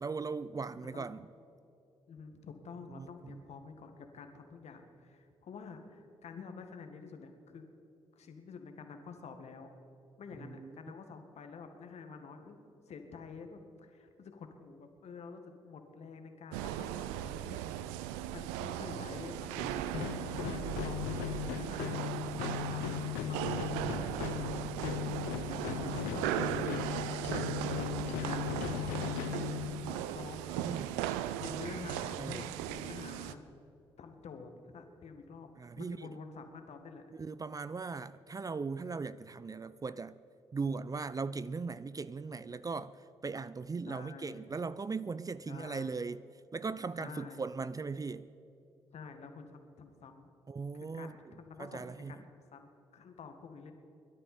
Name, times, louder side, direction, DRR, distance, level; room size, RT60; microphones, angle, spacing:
voice 1, 0.0-1.3 3.0-3.4 10.4-10.8 19.6-20.0 22.3-22.9 25.8-26.0 30.5-31.0 32.1-32.5 35.6-36.1 37.1-40.2 40.5-46.2 46.5-48.3 50.5-51.1 51.6-52.1, right 4 dB, 25° right, 0.5 m, -39 dB
voice 2, 2.1-7.6 8.2-9.7 10.2-12.6 12.9-17.6 18.0-29.0 29.3-30.5 30.8-30.9 31.4-33.5 34.0-35.5 35.8-37.1 43.9-44.4 45.5-45.9 47.0-47.5 48.9-50.3 50.7-53.7, left 5 dB, 55° left, 1.8 m, -49 dB
sound 1, 16.5-33.3, right 12 dB, 75° right, 0.5 m, -37 dB
sound 2, 19.9-30.1, left 13 dB, 75° left, 0.5 m, -38 dB
23.0 x 12.0 x 4.3 m
figure-of-eight pair, 40°, 13 cm